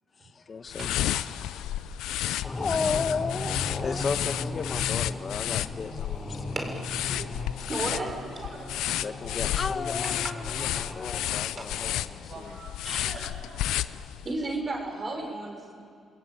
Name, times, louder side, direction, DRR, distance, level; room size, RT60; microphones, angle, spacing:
voice 1, 0.2-0.9 2.5-6.5 9.0-12.4, left 5 dB, 40° left, 10 dB, 1.4 m, -33 dB
sound 1, 0.7-14.4, left 13 dB, 90° left, 0.6 m, -32 dB
voice 2, 0.8-2.0 2.5-2.8 3.2-3.4 3.7-4.1 4.9-5.0 7.1-7.3 7.7-9.2 9.6-9.7 10.0-10.9 11.2-14.1 15.1-15.3, right 3 dB, 55° right, 2 dB, 6.8 m, -46 dB
sound 2, 2.4-12.3, left 2 dB, 15° left, 4.6 m, -38 dB
voice 3, 6.5-7.1 7.7-8.2 8.4-8.5 10.0-10.3 12.8-13.3 14.2-15.7, right 2 dB, 35° right, 4 dB, 5.3 m, -33 dB
28.0 x 21.0 x 9.0 m, 2.2 s
cardioid pair, 90°, 0 cm